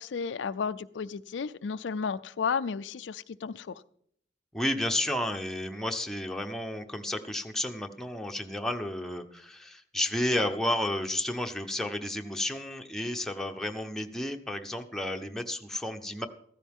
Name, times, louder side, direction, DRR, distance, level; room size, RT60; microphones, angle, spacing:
voice 1, 0.0-3.8, left 6 dB, 90° left, 0.4 m, -33 dB
voice 2, 4.5-16.3, left 1 dB, 5° left, 0.9 m, -32 dB
15.0 x 14.5 x 3.6 m
head